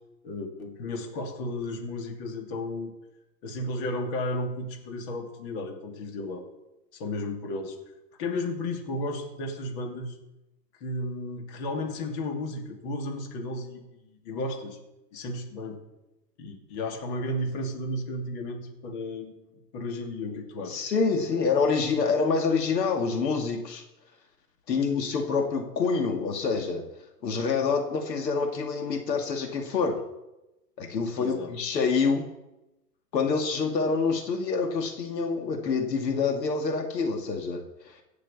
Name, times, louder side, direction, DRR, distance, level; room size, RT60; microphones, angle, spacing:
voice 1, 0.2-2.9 3.4-6.4 6.9-7.8 8.2-10.2 10.8-14.8 15.1-15.8 16.4-20.9 21.3-21.4 31.2-31.5, left 1 dB, 40° left, 2 dB, 2.7 m, -34 dB
voice 2, 20.7-23.8 24.7-26.8 27.2-30.0 30.8-32.3 33.1-37.6, left 4 dB, 75° left, 3 dB, 2.4 m, -26 dB
17.0 x 6.7 x 7.1 m, 0.95 s
hypercardioid pair, 135°, 50 cm